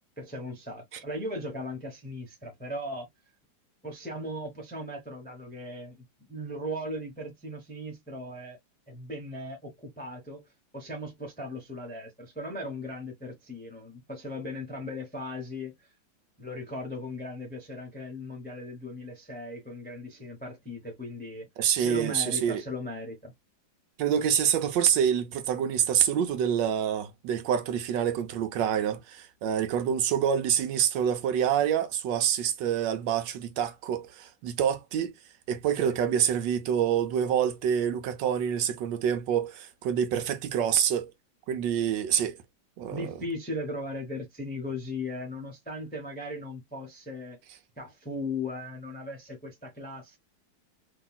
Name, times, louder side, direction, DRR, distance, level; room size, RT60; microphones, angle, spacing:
voice 1, 0.2-3.1 3.8-8.6 8.9-10.5 10.7-15.9 16.4-21.5 21.7-23.3 35.8-36.0 42.9-47.4 47.8-50.2, left 1 dB, 15° left, 0.4 m, -38 dB
voice 2, 21.6-22.6 24.0-35.1 35.5-41.1 41.5-42.4 42.8-43.0, right 9 dB, 75° right, 1.2 m, -26 dB
2.9 x 2.8 x 2.2 m
omnidirectional pair, 2.1 m